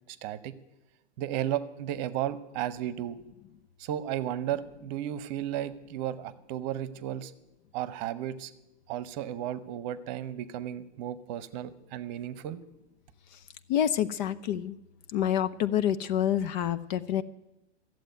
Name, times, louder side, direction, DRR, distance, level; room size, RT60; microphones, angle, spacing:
voice 1, 0.1-0.5 1.2-3.2 3.8-7.3 7.7-8.5 8.9-12.6, right 11 dB, 40° right, 15 dB, 1.0 m, -34 dB
voice 2, 13.7-14.8 15.1-17.2, left 10 dB, 40° left, 14 dB, 0.6 m, -27 dB
14.0 x 7.8 x 9.2 m, 0.96 s
hypercardioid pair, 115°, 35 cm